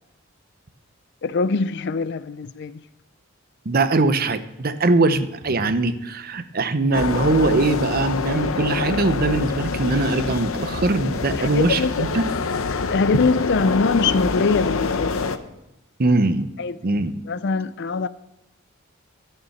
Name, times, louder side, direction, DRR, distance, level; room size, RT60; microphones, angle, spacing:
voice 1, 1.2-2.8 11.3-12.1 12.7-15.2 16.6-16.8 17.3-18.1, left 4 dB, 55° left, 0.4 m, -23 dB
voice 2, 3.7-12.3 16.0-16.5 16.8-17.2, right 2 dB, 45° right, 0.7 m, -21 dB
sound 1, 6.9-15.4, left 4 dB, 75° left, 0.8 m, -26 dB
12.5 x 6.8 x 7.0 m
head